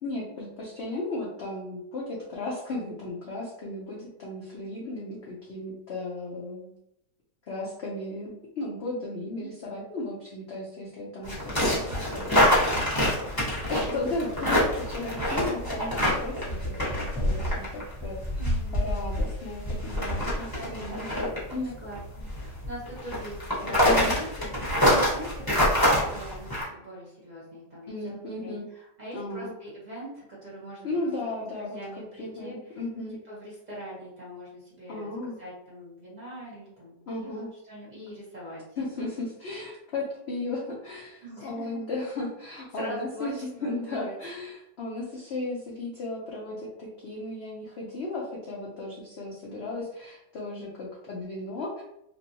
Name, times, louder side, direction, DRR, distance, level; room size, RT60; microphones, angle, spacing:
voice 1, 0.0-6.7 7.5-11.8 12.1-13.0 13.7-18.2 18.7-21.8 23.8-24.1 27.9-28.6 29.1-29.5 30.8-33.2 34.9-35.4 37.1-37.5 38.8-51.8, left 2 dB, 75° left, -5 dB, 0.6 m, -35 dB
sound 1, 11.2-26.6, equal, 20° left, 0.7 m, -26 dB
voice 2, 11.6-12.0 13.8-14.2 15.6-15.7 18.4-18.8 20.5-21.1 21.8-31.3 31.6-32.8 33.3-35.1 35.4-38.8 41.2-41.8 42.5-44.1, right 1 dB, 35° right, -7 dB, 0.8 m, -42 dB
3.0 x 2.5 x 2.7 m, 0.79 s
omnidirectional pair, 1.9 m